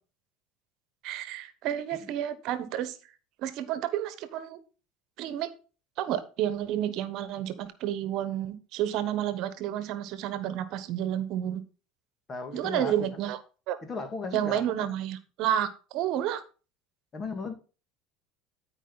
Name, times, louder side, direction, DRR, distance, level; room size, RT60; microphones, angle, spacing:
voice 1, 1.0-3.0 3.4-4.6 5.2-5.5 6.0-11.6 12.5-13.4 13.7-13.8 14.3-16.4, right 11 dB, 60° right, 1.1 m, -30 dB
voice 2, 12.3-13.2 13.8-14.9 17.1-17.5, left 3 dB, 30° left, 2.1 m, -36 dB
12.5 x 5.1 x 4.0 m
supercardioid pair, 90°, 0 cm